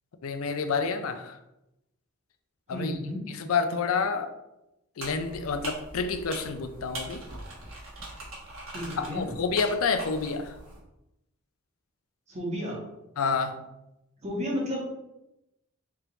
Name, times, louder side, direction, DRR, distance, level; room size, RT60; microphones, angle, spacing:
voice 1, 0.2-1.4 2.7-2.9 3.3-4.3 5.0-7.2 9.0-10.6 13.2-13.6, left 5 dB, 85° left, 9 dB, 0.5 m, -29 dB
voice 2, 2.7-3.2 8.7-9.3 12.3-12.8 14.2-14.8, equal, 35° right, -4 dB, 1.2 m, -32 dB
sound 1, 5.0-10.8, right 1 dB, 65° right, 1.3 m, -42 dB
3.5 x 3.0 x 3.9 m, 0.90 s
head